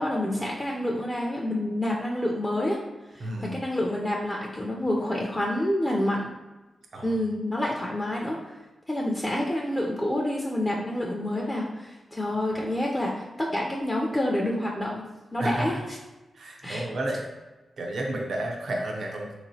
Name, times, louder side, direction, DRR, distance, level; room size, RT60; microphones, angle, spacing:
voice 1, 0.0-2.8 3.1-6.3 7.0-8.5 8.9-15.0 15.3-16.0 16.6-16.8, left 1 dB, 20° left, -2 dB, 0.4 m, -28 dB
voice 2, 3.2-3.6 6.9-7.2 15.4-15.7 16.3-17.2 17.8-19.3, right 1 dB, 70° right, 0 dB, 0.6 m, -31 dB
3.6 x 2.9 x 2.7 m, 1.1 s
cardioid pair, 80°, 0 cm